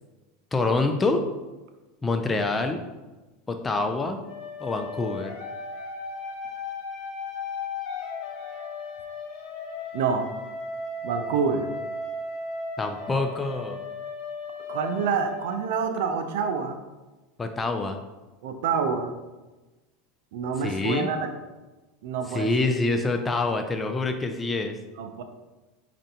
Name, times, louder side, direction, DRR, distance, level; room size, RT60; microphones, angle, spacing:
voice 1, 0.5-1.2 2.0-2.8 3.5-4.2 4.6-5.3 12.8-13.8 17.4-18.0 20.6-21.1 22.3-24.8, left 3 dB, 15° left, 5 dB, 0.3 m, -26 dB
sound 1, 4.2-16.0, left 3 dB, 60° left, 0.8 m, -36 dB
voice 2, 9.9-10.3 11.0-11.7 14.7-16.8 18.4-19.1 20.3-21.3 22.0-22.7 25.0-25.2, right 6 dB, 75° right, 6 dB, 0.4 m, -27 dB
5.3 x 2.5 x 2.7 m, 1.2 s
supercardioid pair, 120°, 0 cm